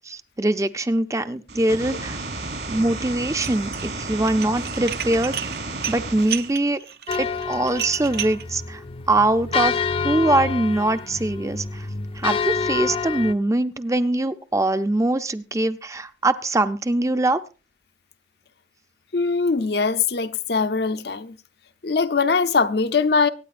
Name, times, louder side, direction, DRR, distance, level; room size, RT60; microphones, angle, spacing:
voice 1, 0.1-2.2 2.7-5.4 5.9-6.8 7.2-8.8 9.1-9.7 10.0-11.9 12.2-17.4, right 2 dB, 15° right, 0.5 m, -22 dB
sound 1, 1.5-6.5, right 2 dB, 75° right, 3.7 m, -32 dB
Dishes pots and pans, 3.3-3.9 4.2-8.4, right 9 dB, 60° right, 0.7 m, -31 dB
sound 2, 7.1-13.3, left 5 dB, 30° left, 0.5 m, -28 dB
voice 2, 19.1-21.4 21.8-23.3, left 4 dB, 65° left, 0.7 m, -21 dB
24.0 x 9.3 x 2.5 m
head